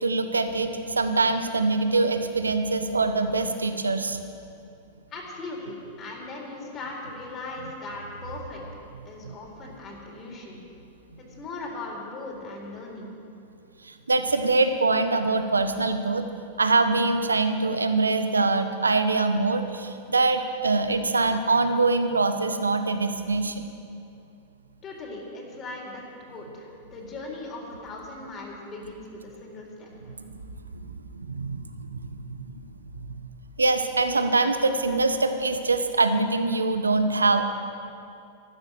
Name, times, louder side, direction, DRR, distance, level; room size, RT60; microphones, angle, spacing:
voice 1, 0.0-4.2 9.2-9.3 13.8-16.2 16.6-23.6 30.2-30.4 30.8-31.6 31.9-32.4 33.0-33.2 33.6-37.4, right 3 dB, 90° right, 8 dB, 1.1 m, -24 dB
voice 2, 5.1-8.6 9.0-10.6 11.2-13.2 24.8-26.0 26.3-29.9, left 2 dB, 35° left, -2 dB, 4.2 m, -39 dB
14.0 x 13.0 x 6.7 m, 2.6 s
hypercardioid pair, 100°, 0 cm